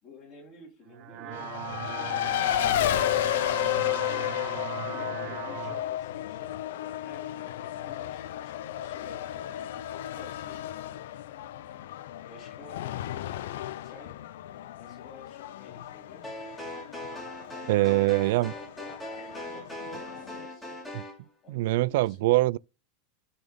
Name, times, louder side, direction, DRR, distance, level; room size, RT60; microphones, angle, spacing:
voice 1, 0.0-2.6 3.5-4.3 4.7-11.0 12.2-12.8 13.8-14.2 14.7-16.3 17.5-20.8 21.4-22.4, left 3 dB, 25° left, 3.5 m, -52 dB
sound 1, 0.9-5.8, right 11 dB, 35° right, 0.8 m, -38 dB
Race car auto racing, 1.3-20.5, left 13 dB, 70° left, 0.5 m, -33 dB
sound 2, 16.2-21.2, left 1 dB, 5° left, 2.2 m, -40 dB
voice 2, 17.7-18.5 20.9-21.0 21.5-22.6, right 19 dB, 55° right, 0.3 m, -23 dB
12.0 x 4.2 x 3.5 m
supercardioid pair, 175°, 0 cm